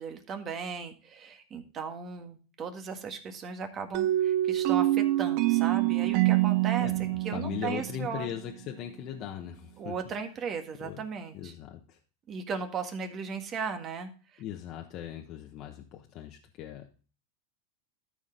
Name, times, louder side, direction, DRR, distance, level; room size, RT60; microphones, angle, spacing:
voice 1, 0.0-6.9 7.2-8.3 9.8-11.5 12.3-14.4, right 6 dB, 35° right, 6 dB, 1.7 m, -36 dB
sound 1, 3.9-8.6, right 16 dB, 55° right, 0.6 m, -26 dB
voice 2, 6.8-9.9 10.8-11.0 11.3-12.0 14.4-16.9, left 11 dB, 45° left, 2 dB, 1.2 m, -39 dB
13.0 x 5.0 x 3.8 m, 0.36 s
supercardioid pair, 120°, 0 cm